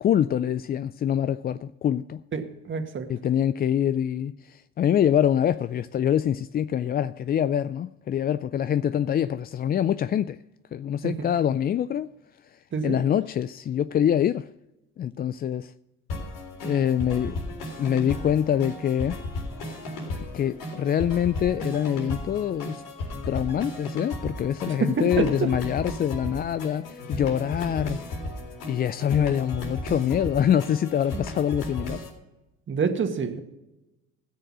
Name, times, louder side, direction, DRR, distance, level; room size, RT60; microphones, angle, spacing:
voice 1, 0.0-2.2 3.1-10.4 10.7-12.1 12.4-14.5 15.0-15.7 16.6-17.4 17.8-19.2 20.3-22.8 23.3-28.0 28.7-32.0, left 9 dB, 30° left, 0.4 m, -25 dB
voice 2, 2.3-3.1 11.0-11.3 12.7-13.0 24.8-25.5 32.7-33.4, right 5 dB, 40° right, 1.8 m, -27 dB
sound 1, 16.1-32.1, left 1 dB, 85° left, 3.9 m, -35 dB
16.5 x 6.7 x 6.1 m
supercardioid pair, 80°, 32 cm